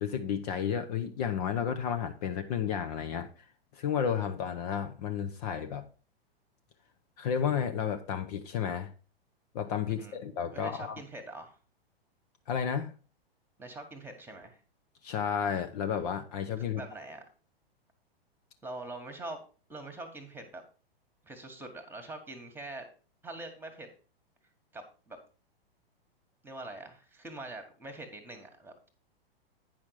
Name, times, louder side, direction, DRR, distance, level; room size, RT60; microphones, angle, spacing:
voice 1, 0.0-3.3 3.7-5.8 7.2-8.9 9.5-11.0 12.5-12.9 15.0-16.8, left 8 dB, 40° left, 7 dB, 0.7 m, -32 dB
voice 2, 10.5-11.6 13.6-14.6 16.6-17.2 18.6-19.4 19.7-20.6 21.2-22.9 23.2-23.9 24.7-25.2 26.4-28.9, right 2 dB, 5° right, 7 dB, 1.5 m, -44 dB
9.1 x 5.8 x 4.6 m, 0.36 s
figure-of-eight pair, 105°, 30 cm